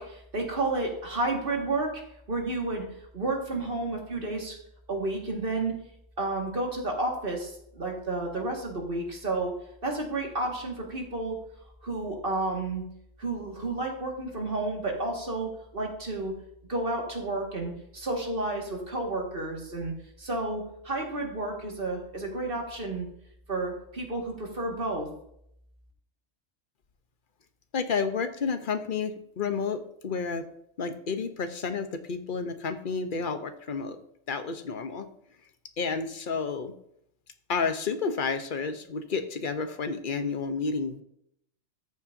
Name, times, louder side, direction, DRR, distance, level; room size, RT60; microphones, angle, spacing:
voice 1, 0.0-2.0 2.3-2.8 3.1-4.6 4.9-5.8 6.2-9.5 9.8-11.4 11.8-12.8 13.2-16.3 16.7-23.1 23.5-25.1, right 2 dB, 45° right, 0 dB, 2.1 m, -31 dB
voice 2, 27.7-30.4 30.8-34.0 34.3-35.1 35.8-36.7 37.5-41.0, left 5 dB, 45° left, 8 dB, 0.9 m, -30 dB
13.5 x 7.3 x 2.7 m, 0.73 s
omnidirectional pair, 1.4 m